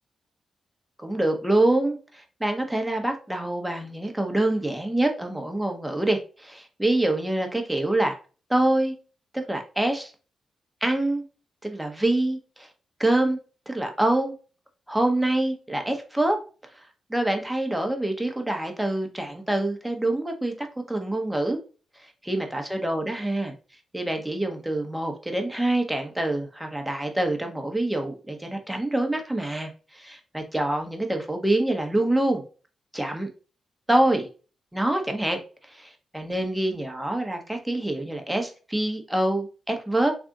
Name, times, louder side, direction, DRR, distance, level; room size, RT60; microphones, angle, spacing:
voice 1, 1.0-8.2 8.5-8.9 9.3-10.1 10.8-11.2 11.6-12.7 13.0-13.4 13.7-14.3 14.9-16.4 17.1-21.6 22.3-23.5 23.9-32.4 32.9-33.3 33.9-34.3 34.7-35.4 35.7-40.2, right 1 dB, 10° right, 4 dB, 1.0 m, -25 dB
3.4 x 2.5 x 3.7 m, 0.35 s
supercardioid pair, 45°, 0 cm